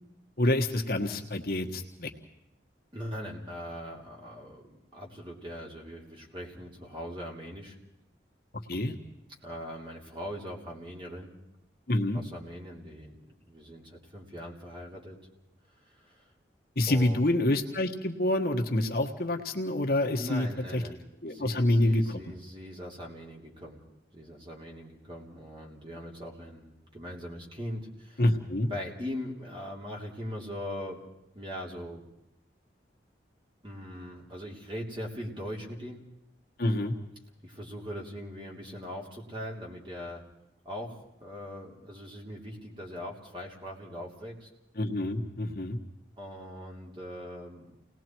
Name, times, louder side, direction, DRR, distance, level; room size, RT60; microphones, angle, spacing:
voice 1, 0.4-2.1 8.7-8.9 11.9-12.2 16.7-20.5 20.7-20.8 21.2-22.2 28.2-28.7 36.6-36.9 44.8-45.8, left 1 dB, 55° left, 3 dB, 1.4 m, -27 dB
voice 2, 2.9-7.8 9.4-11.4 12.1-15.2 15.8-16.3 16.9-17.2 20.1-21.0 21.3-23.8 24.1-28.2 28.7-31.0 31.3-32.0 33.6-36.1 37.4-40.2 40.6-44.5 46.2-47.7, equal, 25° right, -1 dB, 3.2 m, -41 dB
29.5 x 19.5 x 4.6 m, 0.83 s
head